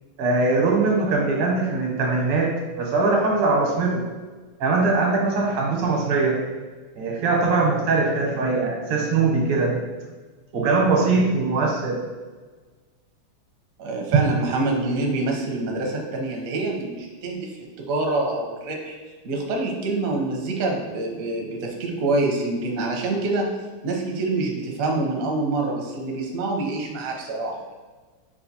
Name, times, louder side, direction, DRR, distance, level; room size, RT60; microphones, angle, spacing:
voice 1, 0.2-4.0 4.6-6.4 7.0-9.8 10.5-12.0, right 3 dB, 85° right, -1 dB, 1.8 m, -21 dB
voice 2, 13.8-18.9 19.2-23.5 23.8-27.6, right 2 dB, 70° right, 0 dB, 0.8 m, -26 dB
6.4 x 2.4 x 2.7 m, 1.3 s
omnidirectional pair, 2.3 m